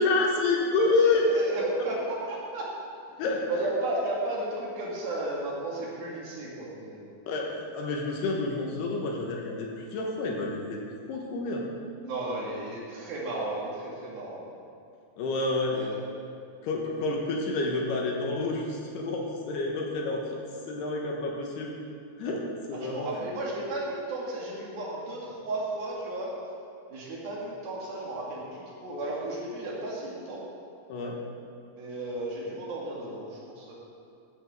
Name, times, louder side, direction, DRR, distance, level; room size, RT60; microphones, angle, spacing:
voice 1, 0.0-1.2 3.2-3.5 7.3-10.8 11.1-11.7 15.2-15.8 16.6-21.7 22.2-23.1 30.9-31.2, left 3 dB, 70° left, -1 dB, 2.9 m, -28 dB
voice 2, 1.0-2.7 3.5-7.1 12.0-14.5 15.7-16.0 22.7-26.3 26.9-30.4 31.8-33.7, right 2 dB, 60° right, -4 dB, 3.5 m, -34 dB
15.0 x 12.0 x 3.6 m, 2.5 s
omnidirectional pair, 5.2 m